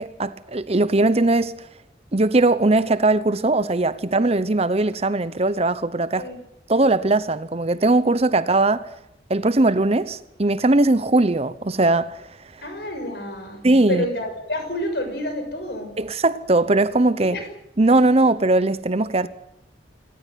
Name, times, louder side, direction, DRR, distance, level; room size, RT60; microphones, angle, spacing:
voice 1, 0.0-1.6 2.1-6.3 6.7-8.9 9.3-12.2 12.5-12.6 13.6-14.0 16.0-17.4 17.8-19.3, right 2 dB, 35° right, 0.9 m, -19 dB
voice 2, 12.6-13.6 13.9-15.9 17.2-17.4, left 1 dB, 65° left, 6.2 m, -29 dB
26.5 x 14.5 x 9.4 m
head